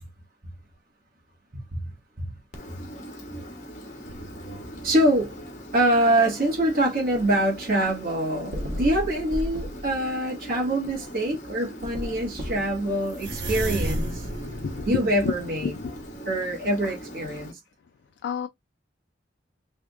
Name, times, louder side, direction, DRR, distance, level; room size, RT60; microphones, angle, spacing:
Engine, 2.5-17.5, equal, 40° left, 1.2 m, -41 dB
sound 1, 4.0-6.2 6.7-7.4 7.9-8.0 8.5-10.1 10.8-11.1 11.5-11.6 11.8-16.9 17.2-17.3, right 1 dB, 70° right, 1.1 m, -34 dB
voice 1, 4.8-5.3 5.7-14.2 14.8-15.8 16.2-17.5, right 1 dB, 50° right, 1.6 m, -24 dB
voice 2, 14.5-14.8 15.2-15.3 15.6-15.7 18.2-18.5, left 6 dB, 70° left, 0.3 m, -29 dB
3.5 x 3.4 x 2.4 m
head